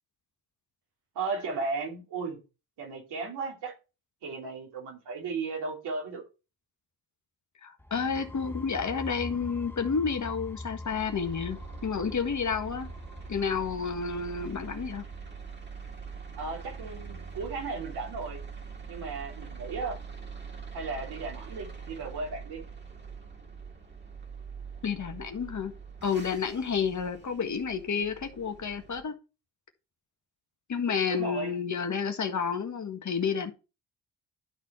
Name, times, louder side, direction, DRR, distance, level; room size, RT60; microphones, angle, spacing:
voice 1, 1.1-2.4 2.8-3.7 4.2-6.2 16.3-18.4 18.9-20.0 20.7-22.6 31.1-31.6, right 4 dB, 75° right, 3.0 m, -35 dB
voice 2, 7.6-12.9 13.3-15.1 24.8-25.7 26.0-29.1 30.7-33.5, left 6 dB, 45° left, 1.6 m, -30 dB
sound 1, 7.8-15.4, left 2 dB, 5° left, 0.9 m, -44 dB
sound 2, 10.8-29.0, right 6 dB, 25° right, 2.2 m, -44 dB
12.0 x 4.1 x 4.3 m
hypercardioid pair, 50°, 41 cm